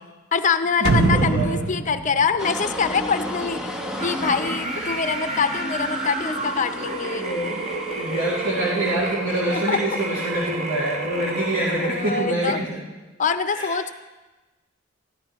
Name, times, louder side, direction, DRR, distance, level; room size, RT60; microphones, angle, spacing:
voice 1, 0.3-7.3 9.5-9.8 11.8-12.6 13.2-13.9, left 5 dB, 35° left, 10 dB, 0.5 m, -24 dB
sound 1, 0.8-3.7 4.0-4.1, right 3 dB, 50° right, 0.6 m, -23 dB
voice 2, 1.1-1.6 4.8-5.0 7.1-12.8 13.5-13.7, right 1 dB, 70° right, -9 dB, 2.7 m, -26 dB
sound 2, 2.4-9.2, equal, 5° right, 0.8 m, -35 dB
sound 3, 3.9-12.3, right 2 dB, 35° right, 1.0 m, -30 dB
14.0 x 13.0 x 3.0 m, 1.2 s
head